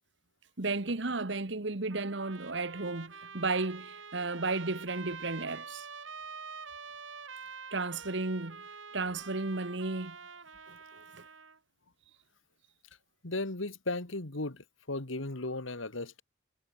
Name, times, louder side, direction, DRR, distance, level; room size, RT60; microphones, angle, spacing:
voice 1, 0.6-5.9 7.7-8.6 8.9-10.2 10.7-11.0, right 3 dB, 65° right, 1.4 m, -34 dB
Trumpet, 1.9-11.6, right 5 dB, 90° right, 7.0 m, -46 dB
voice 2, 13.2-16.2, left 2 dB, 85° left, 2.2 m, -36 dB
head